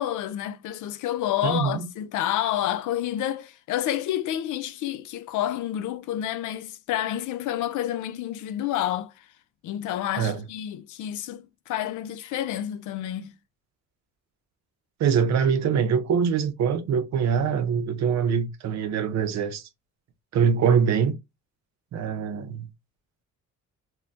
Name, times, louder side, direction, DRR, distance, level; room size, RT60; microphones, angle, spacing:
voice 1, 0.0-9.3 9.6-13.3, left 12 dB, 80° left, 0.5 m, -29 dB
voice 2, 1.4-1.9 10.2-10.5 15.0-19.7 20.3-21.2 21.9-22.7, right 7 dB, 60° right, 0.6 m, -23 dB
2.2 x 2.2 x 3.7 m
cardioid pair, 90°, 30 cm